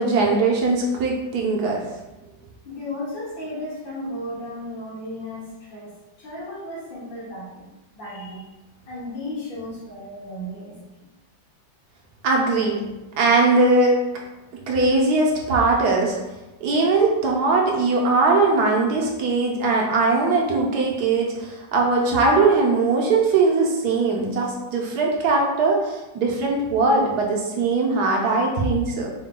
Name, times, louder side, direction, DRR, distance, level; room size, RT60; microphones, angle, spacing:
voice 1, 0.0-1.8 12.2-12.8 13.1-14.0 14.7-16.2 16.6-29.1, right 3 dB, 70° right, -1 dB, 1.1 m, -20 dB
voice 2, 2.6-5.9 6.2-8.5 8.9-11.1, left 1 dB, 75° left, -7 dB, 2.2 m, -34 dB
4.6 x 2.2 x 3.7 m, 1.0 s
omnidirectional pair, 2.0 m